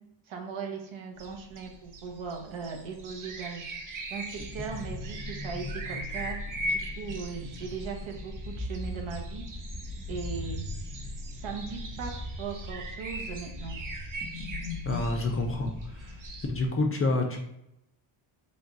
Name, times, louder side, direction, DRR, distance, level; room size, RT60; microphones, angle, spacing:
voice 1, 0.3-3.6 4.1-6.4 6.7-9.4 10.1-10.6 11.2-12.1 12.4-13.8, right 5 dB, 70° right, 3 dB, 1.0 m, -38 dB
sound 1, 1.2-16.5, right 1 dB, 40° right, 0.6 m, -41 dB
sound 2, 4.3-16.7, left 1 dB, 10° left, 1.0 m, -39 dB
voice 2, 14.8-16.1 16.5-17.4, left 2 dB, 30° left, 2 dB, 0.4 m, -28 dB
3.4 x 2.4 x 3.9 m, 0.83 s
cardioid pair, 125°, 50 cm